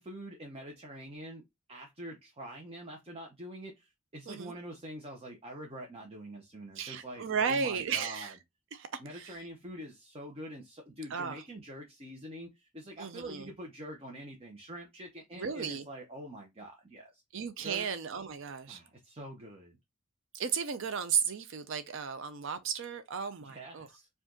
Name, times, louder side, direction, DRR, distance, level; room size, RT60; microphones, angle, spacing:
voice 1, 0.0-1.4 1.7-8.4 9.0-17.2 17.6-17.9 18.7-19.8 23.4-24.1, right 1 dB, 30° right, 0.8 m, -45 dB
voice 2, 6.8-8.3 8.7-9.4 11.1-11.4 13.0-13.5 15.4-15.9 17.3-18.8 20.3-23.9, right 6 dB, 60° right, 0.5 m, -34 dB
4.9 x 2.5 x 3.8 m
head